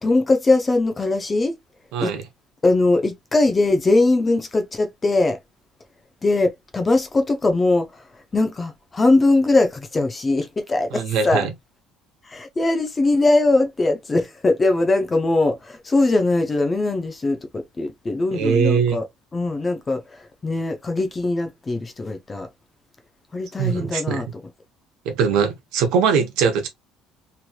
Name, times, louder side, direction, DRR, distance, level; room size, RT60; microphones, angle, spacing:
voice 1, 0.0-1.6 2.0-2.1 2.6-5.4 6.2-8.0 8.3-11.5 12.2-19.1 19.3-22.5 23.3-24.3, left 2 dB, 15° left, 0.4 m, -21 dB
voice 2, 1.9-2.2 10.9-11.5 18.3-19.0 23.6-24.2 25.0-26.7, right 6 dB, 75° right, 0.9 m, -21 dB
3.1 x 2.9 x 2.3 m
cardioid pair, 175°, 0 cm